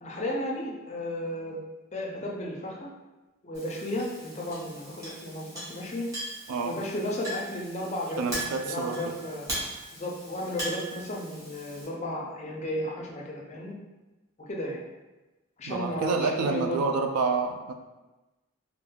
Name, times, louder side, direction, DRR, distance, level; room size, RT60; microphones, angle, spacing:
voice 1, 0.0-1.6 1.9-2.9 3.4-6.1 6.6-9.5 9.9-13.8 14.4-14.8 15.6-16.9, left 1 dB, 30° left, -1 dB, 0.4 m, -34 dB
Chink clink, 3.5-11.9, right 1 dB, 15° right, 1.0 m, -39 dB
voice 2, 8.2-9.1 15.7-17.7, right 4 dB, 85° right, 6 dB, 0.3 m, -28 dB
2.3 x 2.3 x 3.1 m, 1.1 s
head